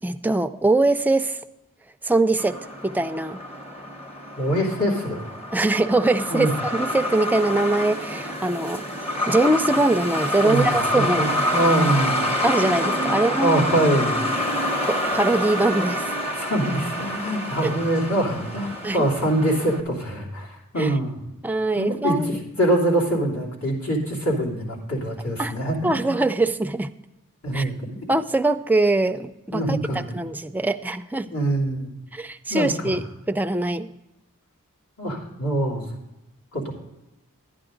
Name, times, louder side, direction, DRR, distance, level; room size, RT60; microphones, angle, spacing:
voice 1, 0.0-1.4 2.0-3.4 5.5-8.8 9.3-11.3 12.4-13.6 14.8-16.1 17.6-17.7 18.8-19.1 20.8-20.9 21.4-22.5 25.4-25.5 25.8-26.9 27.5-27.7 28.1-31.3 32.1-33.9, right 2 dB, 10° right, 8 dB, 0.4 m, -22 dB
Truck, 2.4-19.8, left 1 dB, 30° left, 1.1 m, -27 dB
voice 2, 4.4-5.2 6.3-6.5 10.4-12.2 13.1-14.2 16.4-21.2 21.7-26.2 27.4-28.1 29.5-30.3 31.3-31.9 32.5-33.0 35.0-35.8 36.5-36.7, right 1 dB, 70° left, -2 dB, 3.2 m, -24 dB
12.0 x 9.9 x 3.8 m, 0.95 s
head